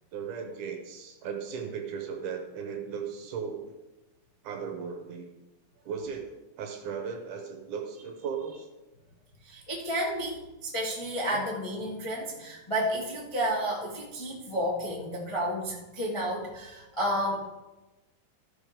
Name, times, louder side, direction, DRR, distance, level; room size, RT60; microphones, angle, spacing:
voice 1, 0.1-3.8 4.4-5.3 5.9-8.7 11.3-11.4, right 6 dB, 70° right, 4 dB, 2.3 m, -37 dB
voice 2, 9.4-17.4, equal, 25° left, -5 dB, 0.6 m, -31 dB
14.0 x 5.1 x 5.2 m, 1.1 s
omnidirectional pair, 4.0 m